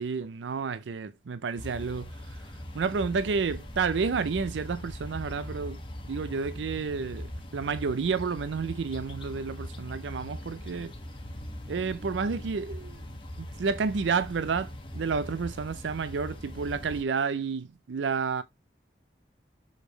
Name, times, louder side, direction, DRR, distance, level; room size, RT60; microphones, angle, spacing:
voice 1, 0.0-2.1 2.7-5.8 6.1-7.3 7.5-10.9 11.7-13.0 13.4-18.4, right 5 dB, 90° right, 0.5 m, -30 dB
sound 1, 1.6-17.0, left 1 dB, 30° left, 1.3 m, -41 dB
6.6 x 5.0 x 3.0 m
head